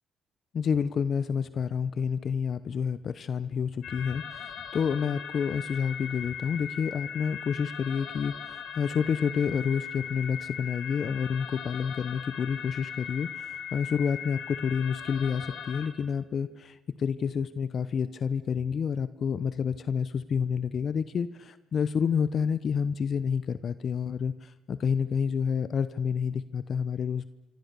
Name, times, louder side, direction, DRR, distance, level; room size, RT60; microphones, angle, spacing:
voice 1, 0.5-27.3, left 6 dB, 55° left, 14 dB, 0.9 m, -29 dB
sound 1, 3.8-15.9, left 8 dB, 75° left, 3.2 m, -39 dB
26.0 x 25.5 x 6.9 m, 1.2 s
cardioid pair, 90°, 0 cm